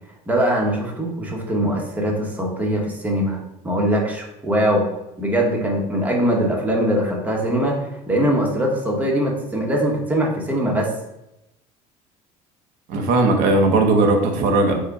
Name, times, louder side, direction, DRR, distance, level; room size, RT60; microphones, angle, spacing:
voice 1, 0.3-3.4 3.6-4.9 5.2-10.9, equal, 10° right, -1 dB, 0.9 m, -22 dB
voice 2, 12.9-14.8, right 2 dB, 70° right, 3 dB, 0.7 m, -17 dB
4.7 x 2.1 x 4.6 m, 0.88 s
cardioid pair, 145°, 14 cm